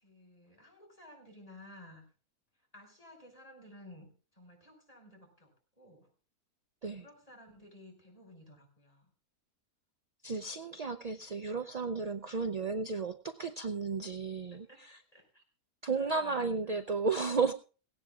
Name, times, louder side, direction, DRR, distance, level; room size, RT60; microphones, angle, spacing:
voice 1, 0.0-2.0 2.7-6.1 6.9-9.1 14.5-14.8 15.1-15.4 15.9-16.8, left 1 dB, 25° left, 3 dB, 5.3 m, -54 dB
voice 2, 10.2-15.0 15.8-17.5, right 4 dB, 50° right, 7 dB, 0.4 m, -33 dB
17.5 x 17.0 x 2.4 m, 0.37 s
omnidirectional pair, 1.6 m